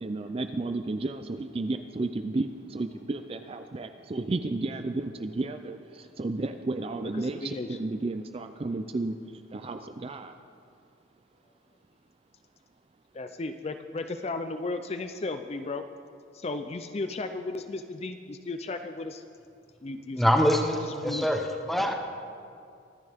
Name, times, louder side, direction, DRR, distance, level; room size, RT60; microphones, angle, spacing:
voice 1, 0.0-9.2 9.5-10.3, right 2 dB, 30° right, 8 dB, 0.4 m, -32 dB
voice 2, 7.0-7.8 13.1-15.8 16.3-19.2 19.8-20.2 20.8-21.3 21.8-21.9, left 3 dB, 30° left, 8 dB, 0.5 m, -35 dB
voice 3, 20.1-21.9, equal, ahead, 2 dB, 0.9 m, -24 dB
24.0 x 10.0 x 3.5 m, 2.4 s
head